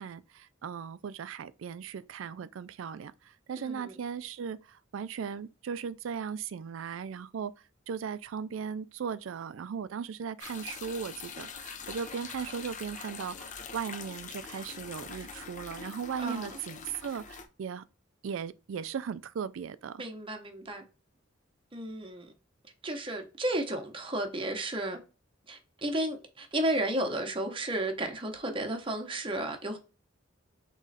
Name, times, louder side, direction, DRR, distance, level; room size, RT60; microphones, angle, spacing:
voice 1, 0.0-7.5 7.9-17.8 18.2-20.0, right 7 dB, 75° right, 0.4 m, -37 dB
voice 2, 3.6-3.9 16.2-16.6 20.0-20.8 21.7-22.3 22.8-25.0 25.5-29.8, right 1 dB, 25° right, 0.9 m, -33 dB
sound 1, 10.4-17.5, left 6 dB, 40° left, 0.6 m, -44 dB
3.8 x 3.0 x 4.1 m
head